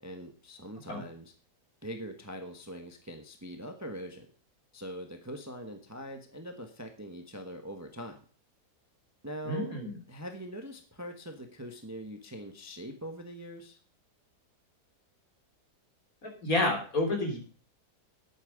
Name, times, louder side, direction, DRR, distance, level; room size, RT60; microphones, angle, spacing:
voice 1, 0.0-1.3 1.8-4.3 4.7-8.2 9.2-9.7 10.1-13.8, equal, 10° right, 5 dB, 1.0 m, -42 dB
voice 2, 9.5-9.9 16.2-17.4, left 2 dB, 55° left, 2 dB, 3.8 m, -29 dB
11.5 x 8.6 x 5.2 m, 0.39 s
omnidirectional pair, 1.8 m